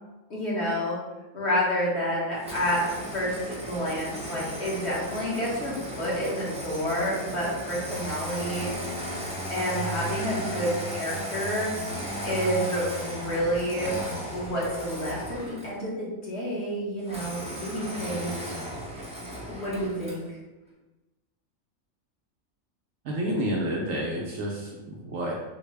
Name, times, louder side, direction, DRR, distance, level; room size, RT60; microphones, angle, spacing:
voice 1, 0.3-1.0 1.3-2.8 3.1-8.7 9.5-11.7 12.2-13.9 14.3-18.5 19.5-20.2, equal, 50° left, -7 dB, 1.3 m, -29 dB
Engine starting, 2.4-15.8 17.1-20.3, right 1 dB, 10° right, 0.4 m, -35 dB
voice 2, 23.0-25.3, right 1 dB, 65° right, -2 dB, 0.8 m, -29 dB
3.8 x 2.1 x 3.2 m, 1.1 s
omnidirectional pair, 1.5 m